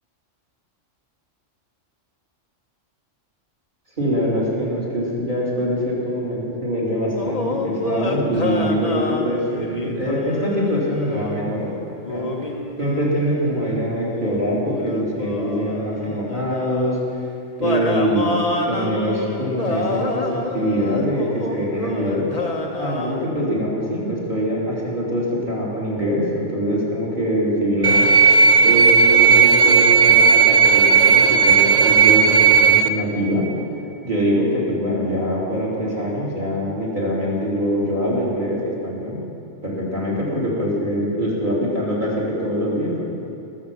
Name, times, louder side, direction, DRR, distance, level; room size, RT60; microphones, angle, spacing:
voice 1, 4.0-11.7 12.1-12.3 12.8-17.0 17.6-22.3 22.8-28.1 28.6-33.5 34.0-39.2 39.6-43.1, equal, 40° right, -5 dB, 3.3 m, -23 dB
sound 1, 7.2-11.4 12.0-17.0 17.6-23.3, left 2 dB, 30° left, 1.0 m, -28 dB
sound 2, 27.8-32.9, right 6 dB, 85° right, 0.3 m, -13 dB
19.5 x 6.8 x 7.2 m, 2.7 s
omnidirectional pair, 1.3 m